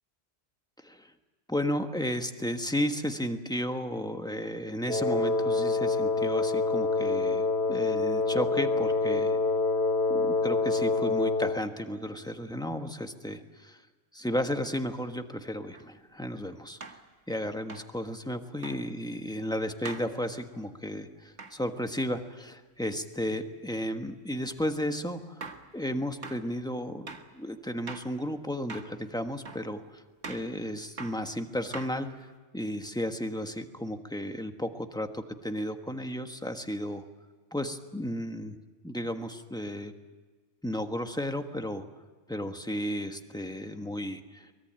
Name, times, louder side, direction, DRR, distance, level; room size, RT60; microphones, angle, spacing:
voice 1, 1.5-9.4 10.1-13.8 14.1-16.8 17.3-25.4 25.7-32.1 32.5-37.0 37.5-38.5 38.8-39.9 40.6-41.8 42.3-44.5, equal, 5° left, 6 dB, 1.4 m, -33 dB
Wind instrument woodwind instrument, 4.9-11.7, left 3 dB, 65° left, 2.1 m, -26 dB
sound 1, 15.7-15.9 16.8-17.0 17.7-17.9 18.6-18.8 19.8-20.1 21.4-21.6 24.6-24.8 25.4-25.7 26.2-26.4 27.1-27.3 27.9-28.1 28.7-29.0 29.4-29.7 30.2-30.5 31.0-31.2 31.7-32.2, right 4 dB, 70° right, 2.0 m, -42 dB
23.5 x 21.5 x 8.9 m, 1.4 s
omnidirectional pair, 1.2 m